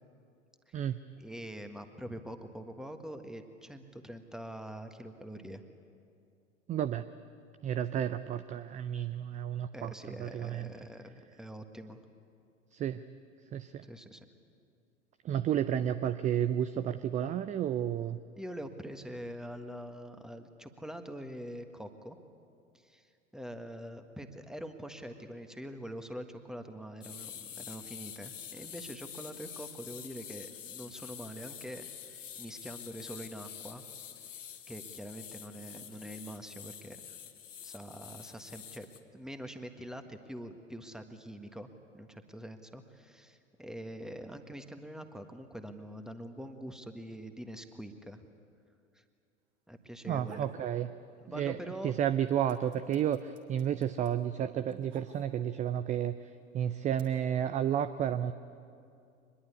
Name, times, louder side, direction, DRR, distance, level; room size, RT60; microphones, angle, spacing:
voice 1, 1.2-5.6 9.7-12.0 13.8-14.2 18.4-22.2 22.7-33.8 34.7-37.0 37.6-38.9 39.1-48.3 48.9-49.0 49.7-50.5 51.2-51.9, equal, ahead, 7 dB, 1.5 m, -44 dB
voice 2, 6.7-7.1 7.6-10.7 12.7-13.0 13.5-13.9 15.2-18.2 50.1-50.9 51.3-51.6 51.8-58.3, right 10 dB, 20° right, 12 dB, 0.5 m, -32 dB
sound 1, 27.0-39.0, left 9 dB, 75° left, 1.4 m, -47 dB
sound 2, 50.2-50.6 51.0-51.7 52.0-55.6 56.4-57.0, right 7 dB, 60° right, 3.2 m, -54 dB
24.5 x 21.0 x 8.4 m, 2.5 s
figure-of-eight pair, 80°, 38 cm